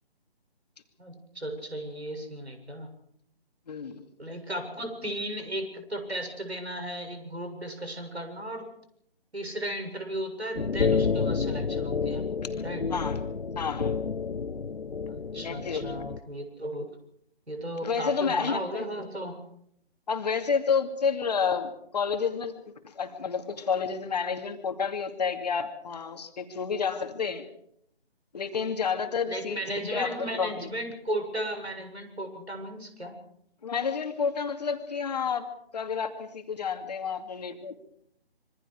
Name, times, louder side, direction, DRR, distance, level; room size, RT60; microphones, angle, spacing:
voice 1, 1.0-2.9 4.2-8.7 9.3-12.8 15.1-16.9 17.5-19.4 29.3-33.2, right 1 dB, 85° right, 5 dB, 7.5 m, -35 dB
voice 2, 3.7-4.0 12.9-13.2 13.6-14.0 15.4-16.0 17.8-18.8 20.1-27.4 28.3-30.7 33.6-35.5 35.7-37.9, left 6 dB, 40° left, 6 dB, 2.6 m, -30 dB
sound 1, 10.6-16.2, left 5 dB, 70° left, 1.1 m, -29 dB
26.0 x 24.5 x 5.0 m, 0.72 s
figure-of-eight pair, 150°, 31 cm